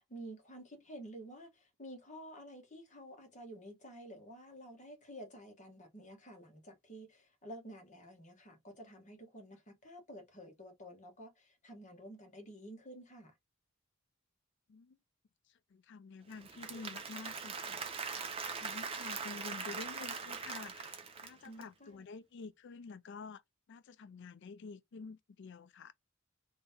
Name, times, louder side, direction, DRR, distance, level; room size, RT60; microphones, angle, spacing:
voice 1, 0.0-13.3 21.4-22.0, right 1 dB, 35° left, 1.3 m, -51 dB
voice 2, 15.5-23.4 23.7-25.9, left 4 dB, 55° left, 0.4 m, -49 dB
Applause / Crowd, 16.3-21.6, right 5 dB, 25° right, 0.6 m, -41 dB
3.0 x 2.8 x 3.4 m
head